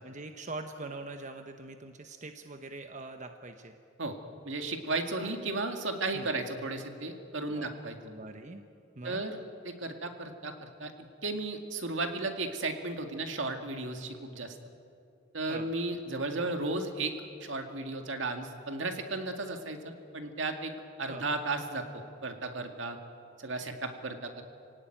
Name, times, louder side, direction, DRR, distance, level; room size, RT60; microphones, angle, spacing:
voice 1, 0.0-3.8 5.2-5.3 6.1-6.3 7.5-8.6 9.0-9.2 15.5-15.7 21.1-21.3, right 2 dB, 40° right, 6 dB, 1.0 m, -43 dB
voice 2, 4.5-8.0 9.0-9.4 9.6-10.9 11.2-14.6 15.3-17.1 17.4-20.7 21.0-23.0 23.4-24.4, right 2 dB, 75° right, 5 dB, 2.1 m, -34 dB
26.0 x 18.0 x 9.1 m, 2.5 s
head